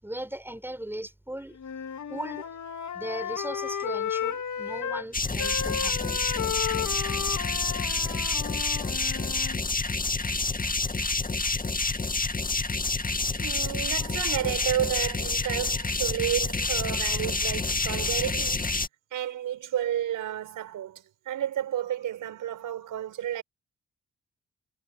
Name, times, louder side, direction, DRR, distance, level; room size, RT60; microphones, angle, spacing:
voice 1, 0.0-1.6 2.1-2.5 2.9-6.2, right 1 dB, 5° right, 5.9 m, -38 dB
Wind instrument woodwind instrument, 1.6-5.1 5.4-9.6, left 8 dB, 65° left, 3.3 m, -33 dB
sound 1, 5.1-18.9, left 3 dB, 25° left, 2.2 m, -28 dB
voice 2, 13.4-18.7 19.1-23.4, right 11 dB, 80° right, 5.0 m, -31 dB
hypercardioid pair, 40°, 31 cm